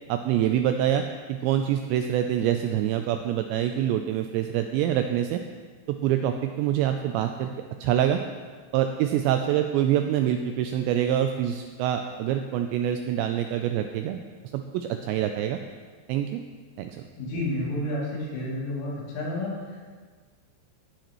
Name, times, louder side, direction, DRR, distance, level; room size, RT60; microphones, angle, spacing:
voice 1, 0.1-1.0 1.3-5.4 5.9-7.5 7.8-8.2 8.7-14.2 14.5-15.6 16.1-16.4 16.8-16.9, right 11 dB, 85° right, 6 dB, 2.5 m, -25 dB
voice 2, 17.2-19.8, left 1 dB, 85° left, -6 dB, 5.4 m, -30 dB
15.5 x 9.1 x 3.0 m, 1.5 s
omnidirectional pair, 5.5 m